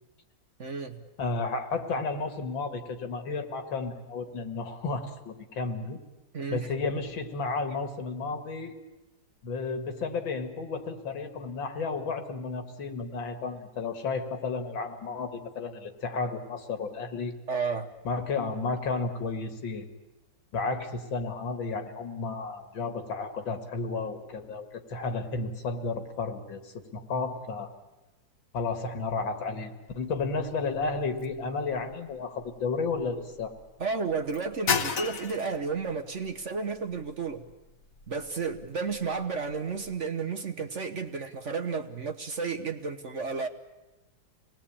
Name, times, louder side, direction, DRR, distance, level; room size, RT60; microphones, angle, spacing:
voice 1, 0.6-1.0 6.3-6.7 17.5-17.9 33.8-37.4 38.1-43.5, right 5 dB, 45° right, 6 dB, 1.2 m, -32 dB
voice 2, 1.2-6.0 6.5-8.7 9.4-17.3 18.0-19.9 20.5-27.7 28.5-33.5, left 4 dB, 85° left, 7 dB, 2.6 m, -32 dB
sound 1, 29.9-40.0, left 6 dB, 50° left, 1.5 m, -38 dB
26.5 x 19.5 x 8.7 m, 1.0 s
omnidirectional pair, 2.1 m